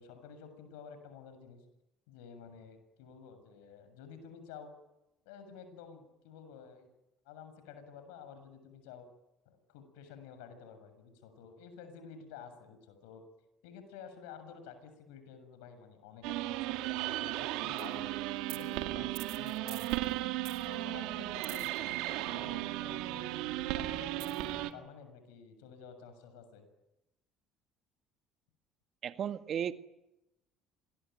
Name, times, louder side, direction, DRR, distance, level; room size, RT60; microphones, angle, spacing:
voice 1, 0.0-1.6 2.1-4.7 5.3-6.9 7.3-9.1 9.5-13.2 13.6-18.1 18.5-20.2 20.6-23.3 23.7-26.7, left 6 dB, 80° left, 9 dB, 7.0 m, -51 dB
sound 1, 16.2-24.7, right 16 dB, 75° right, 2.1 m, -35 dB
voice 2, 29.0-29.7, right 9 dB, 50° right, 9 dB, 1.8 m, -34 dB
27.0 x 22.0 x 9.4 m, 0.93 s
hypercardioid pair, 65°, 0 cm